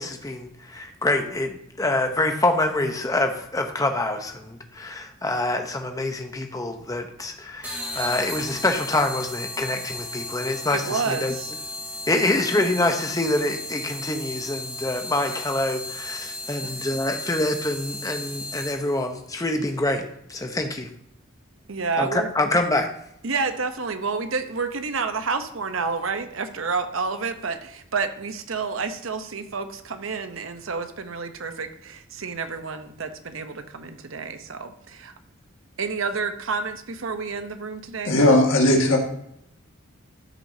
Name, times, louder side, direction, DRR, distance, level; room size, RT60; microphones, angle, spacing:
voice 1, 0.0-11.3 12.1-20.0 20.3-20.9 22.0-22.9, left 2 dB, 15° left, 5 dB, 0.8 m, -26 dB
sound 1, 7.6-19.0, left 2 dB, 10° right, 2.0 m, -35 dB
voice 2, 10.7-11.5 12.2-12.3 16.6-16.9 21.7-22.3 23.2-35.1 35.8-38.1, right 4 dB, 70° right, 9 dB, 0.8 m, -29 dB
voice 3, 38.0-39.0, left 1 dB, 70° left, 1 dB, 1.8 m, -17 dB
13.0 x 6.3 x 2.8 m, 0.73 s
head